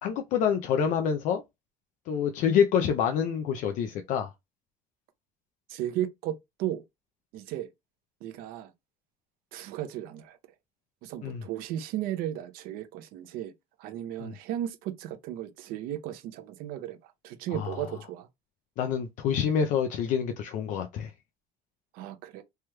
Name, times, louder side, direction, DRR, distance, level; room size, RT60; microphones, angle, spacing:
voice 1, 0.0-1.4 2.1-4.3 11.2-11.4 14.2-14.3 17.5-17.8 18.8-21.1, left 7 dB, 55° left, 0.4 m, -27 dB
voice 2, 5.7-6.8 7.3-7.7 8.2-8.7 9.5-10.4 11.0-13.5 13.8-18.3 21.9-22.4, right 12 dB, 75° right, 0.6 m, -35 dB
3.3 x 3.0 x 2.2 m
cardioid pair, 170°, 15 cm